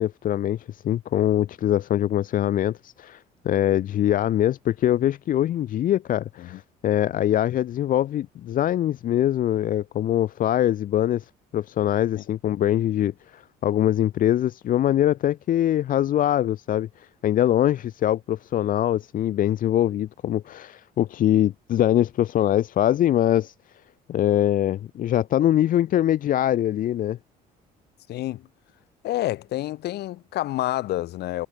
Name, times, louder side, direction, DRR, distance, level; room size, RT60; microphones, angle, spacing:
voice 1, 0.0-23.5 24.1-27.2, left 12 dB, 55° left, 0.8 m, -23 dB
voice 2, 28.1-28.4 29.0-31.5, left 15 dB, 75° left, 4.1 m, -28 dB
cardioid pair, 110°, 17 cm